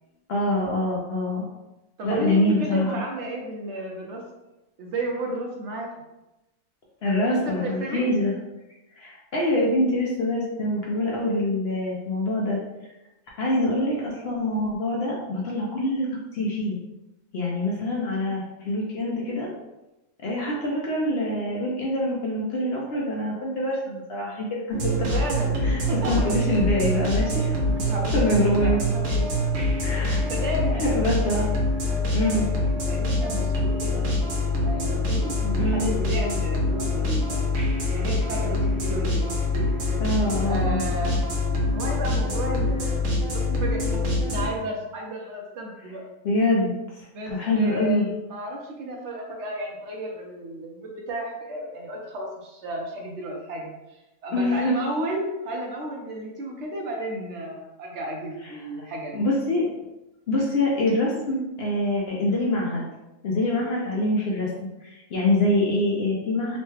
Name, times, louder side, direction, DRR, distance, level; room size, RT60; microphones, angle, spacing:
voice 1, 0.3-1.5 2.0-3.0 7.0-8.3 8.9-12.6 13.4-16.1 16.3-16.8 17.3-19.5 20.2-25.2 25.6-25.8 26.1-27.6 28.1-28.8 29.8-30.2 30.7-31.5 32.1-32.5 35.6-35.9 40.0-40.8 46.2-48.1 54.3-54.7 58.4-58.5 59.1-59.7 60.3-62.8 63.2-64.5 64.8-66.6, left 1 dB, 60° left, -4 dB, 0.7 m, -25 dB
voice 2, 2.0-4.2 4.8-5.9 7.3-8.1 25.1-25.6 26.0-26.1 27.7-29.3 30.3-31.4 32.3-34.1 34.6-39.7 40.4-41.2 41.7-43.0 43.3-46.0 47.1-59.1, right 1 dB, 65° right, 0 dB, 0.8 m, -33 dB
sound 1, 24.7-44.5, left 1 dB, 85° right, 1.2 m, -25 dB
3.1 x 2.1 x 3.1 m, 0.98 s
omnidirectional pair, 1.4 m